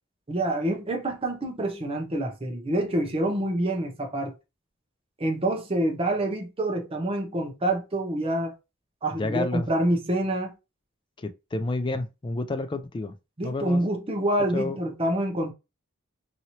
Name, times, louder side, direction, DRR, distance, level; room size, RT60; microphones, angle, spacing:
voice 1, 0.3-4.3 5.2-8.5 9.0-10.5 13.4-15.5, right 1 dB, 25° right, 0.6 m, -27 dB
voice 2, 9.2-9.7 11.2-13.1 13.4-13.8 14.5-14.8, left 2 dB, 20° left, 0.3 m, -30 dB
2.9 x 2.7 x 2.8 m
head